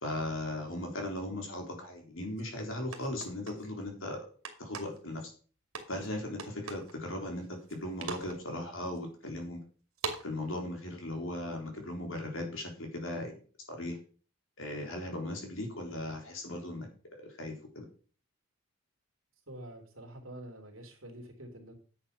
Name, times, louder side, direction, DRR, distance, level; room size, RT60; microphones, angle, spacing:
voice 1, 0.0-4.2 4.6-5.3 5.9-9.6 10.2-13.3 13.7-14.0 14.6-16.9 17.2-17.9, left 1 dB, 65° left, 2 dB, 3.8 m, -38 dB
sound 1, 2.4-2.5 2.9-3.6 4.4-5.0 5.7-6.1 6.4-6.9 7.4-8.4 8.9-9.0 10.0-10.3, right 4 dB, 90° right, 2.4 m, -39 dB
voice 2, 19.5-21.7, right 1 dB, 70° right, 4 dB, 3.1 m, -47 dB
10.5 x 7.9 x 5.7 m, 0.40 s
head